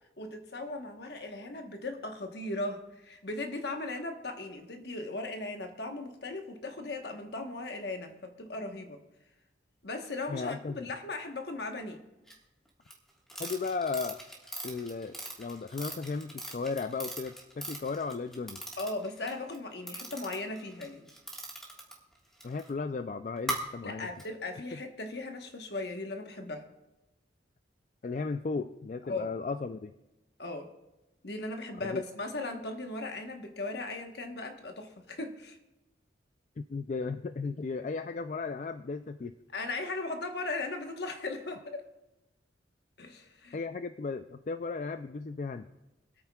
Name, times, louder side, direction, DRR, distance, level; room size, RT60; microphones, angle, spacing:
voice 1, 0.2-9.0 9.8-12.0 18.8-21.1 23.8-26.7 29.1-29.3 30.4-30.7 31.2-35.6 39.5-41.9 43.0-43.6, left 2 dB, 65° left, 5 dB, 1.2 m, -38 dB
voice 2, 10.3-10.8 13.4-14.2 14.6-18.6 22.4-24.1 28.0-29.9 31.8-32.0 36.6-39.3 43.5-45.7, left 4 dB, 40° left, 9 dB, 0.3 m, -35 dB
sound 1, 12.3-12.4 12.9-19.6 19.9-22.7 23.4-23.5 24.2-24.3, right 1 dB, 5° left, 1.6 m, -40 dB
26.0 x 8.8 x 2.3 m, 1.0 s
head